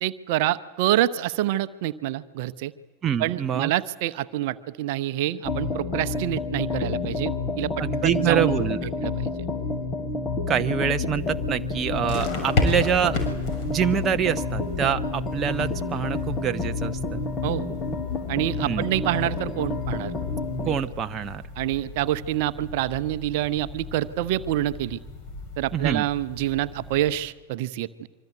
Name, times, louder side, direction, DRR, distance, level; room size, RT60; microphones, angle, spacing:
voice 1, 0.0-2.7 3.2-7.3 7.6-7.7 8.0-8.6 9.0-9.3 17.4-17.7 18.3-20.1 20.6-20.8 21.6-25.0 25.6-28.1, right 14 dB, 50° right, 13 dB, 0.9 m, -27 dB
voice 2, 3.0-3.7 7.8-8.8 10.5-13.2 13.7-17.3 18.6-18.9 20.7-21.5 25.7-26.0, right 9 dB, 25° right, 8 dB, 0.9 m, -25 dB
sound 1, 5.4-20.8, left 3 dB, 25° left, 2.9 m, -29 dB
sound 2, 11.0-27.2, left 3 dB, 40° left, 6.5 m, -35 dB
25.5 x 24.5 x 9.4 m, 1.2 s
figure-of-eight pair, 90°, 0 cm